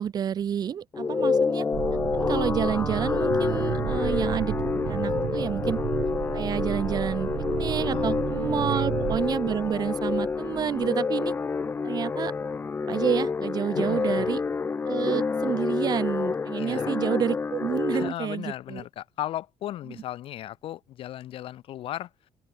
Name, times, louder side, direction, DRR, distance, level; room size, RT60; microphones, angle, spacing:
voice 1, 0.0-1.6 2.1-4.6 4.8-5.8 6.3-11.4 11.8-12.3 12.9-14.4 14.9-18.8, right 8 dB, 45° right, 1.4 m, -29 dB
sound 1, 0.9-18.1, left 5 dB, 20° left, 0.6 m, -28 dB
sound 2, 1.7-10.9, right 14 dB, 70° right, 0.9 m, -33 dB
voice 2, 7.9-8.2 8.7-8.9 13.7-14.3 16.5-17.0 17.9-22.1, left 13 dB, 70° left, 7.0 m, -36 dB
open air
cardioid pair, 145°, 10 cm